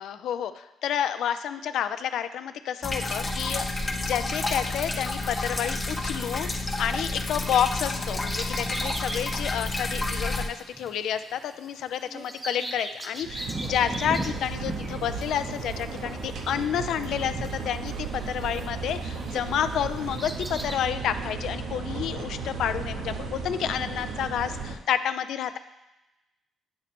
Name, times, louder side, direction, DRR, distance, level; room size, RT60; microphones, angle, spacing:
voice 1, 0.0-25.6, left 9 dB, 75° left, 11 dB, 0.3 m, -30 dB
sound 1, 2.8-10.5, left 2 dB, 20° left, 0.7 m, -30 dB
Bird vocalization bird call bird song, 7.3-19.4 19.9-20.8, right 2 dB, 20° right, 0.6 m, -39 dB
sound 2, 13.2-24.8, right 4 dB, 75° right, 0.7 m, -35 dB
8.6 x 3.0 x 4.2 m, 0.98 s
cardioid pair, 90°, 0 cm